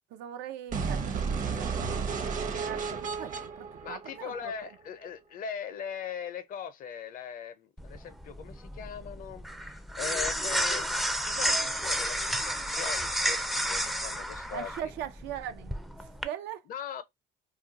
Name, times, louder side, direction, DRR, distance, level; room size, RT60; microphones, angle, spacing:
voice 1, 0.1-4.5 10.5-10.6 14.5-16.6, right 10 dB, 90° right, 0.5 m, -41 dB
sound 1, 0.7-4.7, right 5 dB, 50° right, 0.8 m, -33 dB
voice 2, 3.8-10.9 11.2-14.9 16.7-17.0, left 7 dB, 55° left, 0.6 m, -40 dB
sound 2, 7.8-16.2, equal, ahead, 0.4 m, -31 dB
2.4 x 2.2 x 3.9 m
cardioid pair, 110°, 17 cm